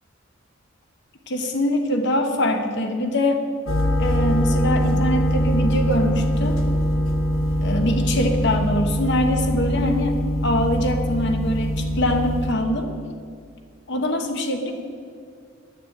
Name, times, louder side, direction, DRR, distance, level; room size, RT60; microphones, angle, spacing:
voice 1, 1.3-3.4 4.0-6.6 7.6-10.1 10.4-12.9 13.9-14.7, left 1 dB, 55° left, 5 dB, 1.1 m, -23 dB
sound 1, 3.7-12.5, equal, 75° left, 1.4 m, -22 dB
11.0 x 6.8 x 8.7 m, 2.2 s
head